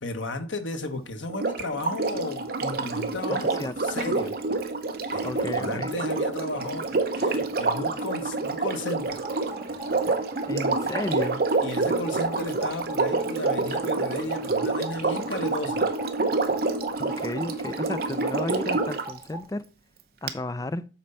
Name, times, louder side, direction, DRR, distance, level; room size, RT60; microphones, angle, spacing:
voice 1, 0.0-4.4 5.1-6.9 7.1-9.2 11.6-15.8, left 2 dB, 90° left, 1.2 m, -34 dB
Sink (filling or washing), 1.3-19.1 20.3-20.4, right 3 dB, 55° right, 0.8 m, -27 dB
voice 2, 3.3-3.7 5.2-6.0 10.5-11.4 17.0-19.6 20.2-20.8, left 2 dB, 20° left, 0.3 m, -33 dB
sound 1, 9.0-19.4, right 2 dB, 15° right, 2.1 m, -43 dB
7.5 x 4.3 x 5.5 m
head